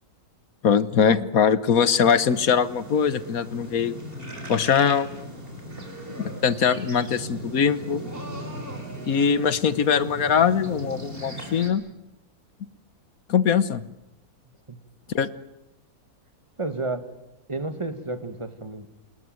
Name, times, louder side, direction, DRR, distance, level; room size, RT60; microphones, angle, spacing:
voice 1, 0.6-4.0 4.5-5.1 6.1-8.0 9.1-11.8 13.3-13.8 15.1-15.3, left 7 dB, 65° left, 15 dB, 1.5 m, -21 dB
sound 1, 1.9-11.7, right 1 dB, 35° right, 4.8 m, -38 dB
voice 2, 16.6-17.1 17.5-18.9, right 2 dB, 20° right, 10 dB, 1.8 m, -31 dB
28.5 x 20.5 x 7.8 m, 0.90 s
omnidirectional pair, 1.7 m